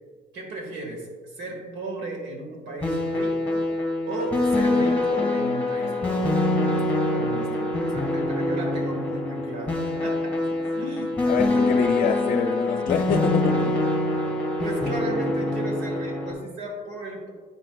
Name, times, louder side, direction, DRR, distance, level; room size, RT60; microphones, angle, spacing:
voice 1, 0.3-1.1 1.4-3.7 4.0-6.5 6.7-10.3 10.7-11.2 14.6-17.3, right 2 dB, 80° right, 1 dB, 1.7 m, -34 dB
sound 1, 2.8-16.3, left 2 dB, 10° left, 1.7 m, -25 dB
voice 2, 11.3-13.8, left 6 dB, 55° left, 8 dB, 0.6 m, -26 dB
9.1 x 5.7 x 2.3 m, 1.5 s
cardioid pair, 110°, 17 cm